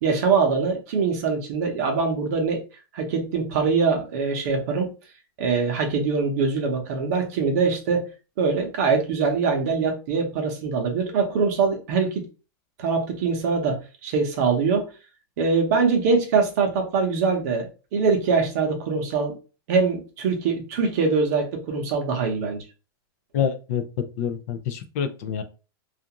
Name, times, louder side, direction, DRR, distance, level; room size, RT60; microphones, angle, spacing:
voice 1, 0.0-2.6 2.9-4.9 5.4-8.1 8.4-12.2 12.8-14.9 15.4-19.3 19.7-22.6, right 5 dB, 45° right, 3 dB, 0.7 m, -23 dB
voice 2, 23.3-23.8 24.2-25.4, left 8 dB, 40° left, 8 dB, 0.4 m, -27 dB
2.4 x 2.4 x 2.8 m, 0.33 s
supercardioid pair, 175°, 13 cm